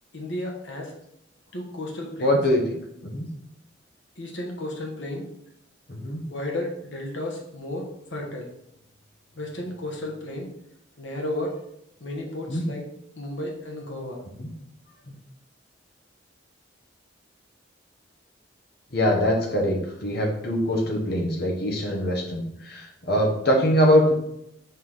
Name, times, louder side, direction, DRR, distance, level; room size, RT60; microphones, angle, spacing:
voice 1, 0.1-0.9 1.5-2.4 4.2-5.2 6.3-8.5 9.3-10.5 11.0-11.6 12.0-12.9 13.2-14.2 14.9-15.0, left 1 dB, 70° left, 0 dB, 1.4 m, -33 dB
voice 2, 2.2-2.6 3.0-3.3 5.9-6.2 12.5-12.6 14.4-14.5 15.1-15.2 18.9-24.1, equal, 50° left, 0 dB, 1.2 m, -23 dB
5.5 x 4.7 x 4.0 m, 0.77 s
head